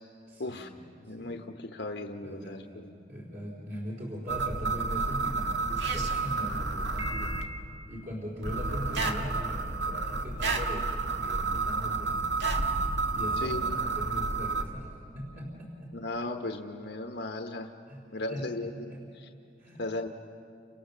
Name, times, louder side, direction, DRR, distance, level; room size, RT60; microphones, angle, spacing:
voice 1, 0.3-0.8 1.2-1.4 2.2-7.4 7.9-12.3 13.1-15.9 17.9-19.0 19.6-19.8, equal, 50° right, -3 dB, 3.9 m, -40 dB
voice 2, 1.0-2.9 13.4-13.8 15.9-17.7 18.1-19.3 19.8-20.1, left 2 dB, 75° left, 4 dB, 1.1 m, -36 dB
sound 1, 4.3-7.4 8.4-14.6, right 3 dB, 85° right, 1.9 m, -30 dB
30.0 x 27.0 x 6.8 m, 2.6 s
head